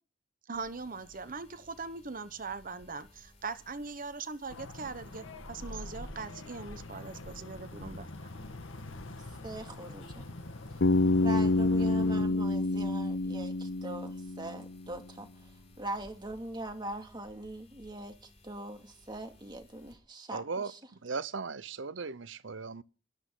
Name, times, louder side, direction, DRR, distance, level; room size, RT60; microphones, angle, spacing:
sound 1, 0.5-19.9, equal, 35° left, 5.5 m, -55 dB
voice 1, 0.5-8.1, right 4 dB, 45° right, 1.1 m, -41 dB
sound 2, 4.5-12.3, left 2 dB, 80° left, 1.7 m, -45 dB
voice 2, 9.4-10.2 11.2-15.5 15.8-20.8, right 1 dB, 20° right, 2.3 m, -42 dB
Bass guitar, 10.8-14.8, left 2 dB, 60° left, 0.7 m, -28 dB
voice 3, 20.3-22.8, right 4 dB, 65° right, 0.8 m, -38 dB
20.0 x 13.5 x 3.9 m
head